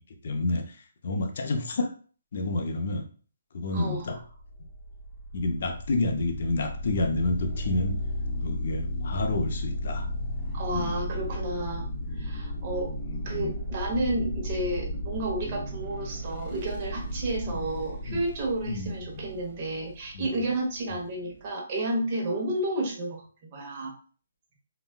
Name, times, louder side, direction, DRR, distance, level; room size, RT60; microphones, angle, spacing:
voice 1, 0.2-0.8 1.0-1.9 2.3-3.1 3.5-4.2 5.3-8.0 8.4-10.1 10.7-10.9 13.0-13.5 17.5-17.7 18.0-18.2 18.6-19.3 20.1-20.3, left 2 dB, 55° left, 4 dB, 0.6 m, -29 dB
voice 2, 3.7-4.1 10.5-11.8 12.1-12.9 13.2-23.9, right 1 dB, 35° right, 0 dB, 0.9 m, -31 dB
sound 1, 4.2-21.5, equal, 15° left, 0.9 m, -34 dB
3.8 x 2.2 x 2.2 m, 0.41 s
hypercardioid pair, 155°, 0 cm